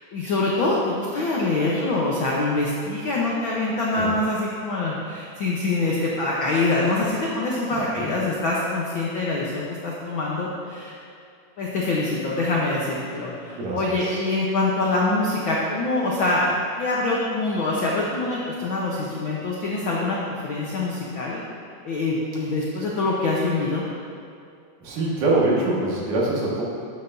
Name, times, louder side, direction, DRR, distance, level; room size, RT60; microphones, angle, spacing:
voice 1, 0.1-10.9 11.6-20.2 20.4-21.4 21.8-23.8, left 2 dB, 80° left, -4 dB, 1.1 m, -24 dB
voice 2, 13.6-14.2 24.8-26.6, right 2 dB, 90° right, -5 dB, 3.3 m, -24 dB
12.5 x 8.6 x 2.7 m, 2.4 s
omnidirectional pair, 3.6 m